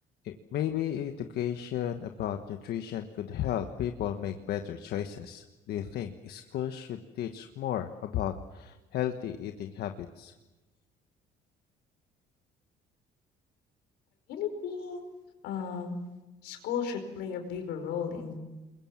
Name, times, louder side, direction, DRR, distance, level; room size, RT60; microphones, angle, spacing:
voice 1, 0.2-10.3, left 10 dB, 70° left, 6 dB, 1.4 m, -34 dB
voice 2, 14.3-15.0 15.4-16.0 16.4-18.4, left 7 dB, 90° left, 6 dB, 5.0 m, -34 dB
29.0 x 22.0 x 7.3 m, 1.1 s
cardioid pair, 110°, 17 cm